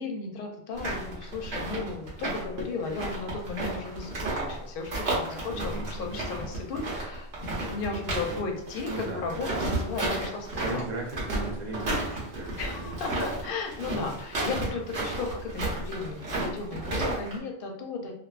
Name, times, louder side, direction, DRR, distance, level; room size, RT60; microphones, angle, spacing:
voice 1, 0.0-10.8 12.6-18.1, left 4 dB, 65° left, 2 dB, 0.7 m, -35 dB
sound 1, 0.8-4.6 4.8-8.4 8.7-17.4, right 2 dB, 75° right, 1.1 m, -32 dB
voice 2, 5.5-6.2 8.9-9.3 10.6-13.2, right 2 dB, 45° right, -2 dB, 0.7 m, -37 dB
2.4 x 2.2 x 2.3 m, 0.78 s
omnidirectional pair, 1.1 m